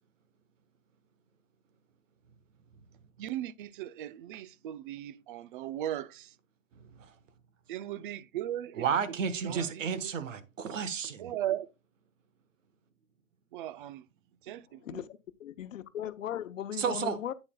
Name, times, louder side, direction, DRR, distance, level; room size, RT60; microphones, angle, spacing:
voice 1, 3.2-6.4 7.7-10.2 11.2-11.7 13.5-14.0 14.4-15.0, right 12 dB, 40° right, 0.5 m, -38 dB
voice 2, 8.8-11.3 16.8-17.2, right 7 dB, 70° right, 1.4 m, -32 dB
voice 3, 15.4-17.3, left 10 dB, 75° left, 0.9 m, -37 dB
9.7 x 8.9 x 2.3 m
hypercardioid pair, 135°, 39 cm